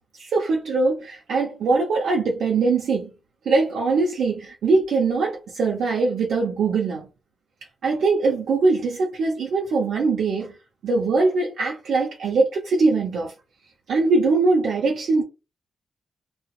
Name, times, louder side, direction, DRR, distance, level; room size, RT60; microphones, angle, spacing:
voice 1, 0.2-3.1 3.4-7.1 7.8-10.6 10.8-13.3 13.9-15.2, right 3 dB, 80° right, 0.8 m, -22 dB
4.2 x 2.4 x 2.4 m
cardioid pair, 65°, 0 cm